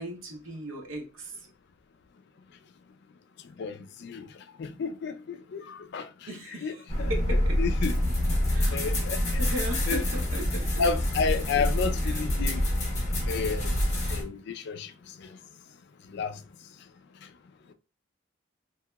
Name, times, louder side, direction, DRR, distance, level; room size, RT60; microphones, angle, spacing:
voice 1, 0.0-1.3 6.3-7.6 8.5-8.8 9.4-10.8 12.0-12.2, equal, 90° right, 0.8 m, -37 dB
voice 2, 3.6-4.3 4.6-7.1 7.6-8.0 8.7-9.4 9.9-10.0 10.8-12.7 13.3-13.7 14.1-14.9 15.2-15.4 16.1-16.4, left 5 dB, 60° left, 0.4 m, -31 dB
sound 1, 6.9-14.2, left 1 dB, 40° left, 1.0 m, -27 dB
2.9 x 2.8 x 2.2 m
head